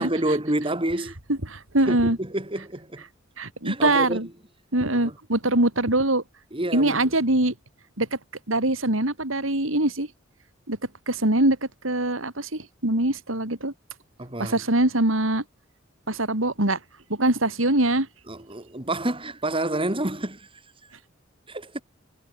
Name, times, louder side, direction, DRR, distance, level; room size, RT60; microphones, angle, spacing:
voice 1, 0.0-1.1 1.9-3.0 3.6-4.2 4.9-5.1 6.5-7.0 14.2-14.6 18.3-20.5 21.5-21.8, right 1 dB, 25° right, 4.6 m, -28 dB
voice 2, 1.3-2.2 3.4-4.3 4.7-6.2 6.7-7.5 8.0-8.1 8.5-10.1 10.7-10.8 11.1-11.6 11.8-13.7 14.4-15.4 16.1-16.8 17.1-18.1, right 1 dB, 85° right, 4.9 m, -23 dB
head